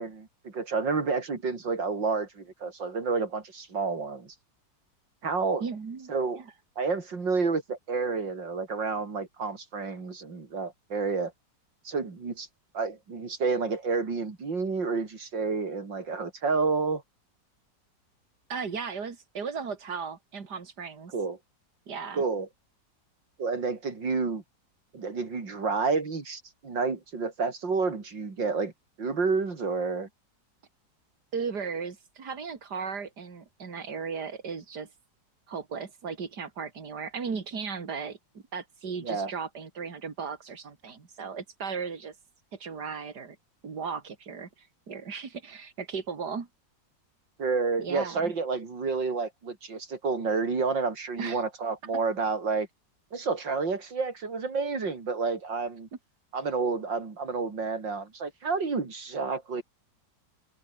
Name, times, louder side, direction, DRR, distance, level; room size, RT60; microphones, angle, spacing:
voice 1, 0.0-4.3 5.2-5.6 6.1-6.4 6.8-11.3 11.8-12.5 12.7-17.0 21.1-21.4 22.1-22.5 23.4-24.4 24.9-28.7 29.0-30.1 39.0-39.3 47.4-52.7 53.1-55.9 56.3-59.6, right 4 dB, 80° right, 4.2 m, -29 dB
voice 2, 5.6-6.5 18.5-21.1 21.9-22.2 31.3-34.9 35.5-42.1 42.5-43.4 43.6-46.5 47.8-48.3 51.2-51.4, right 5 dB, 60° right, 3.2 m, -36 dB
omnidirectional pair, 2.0 m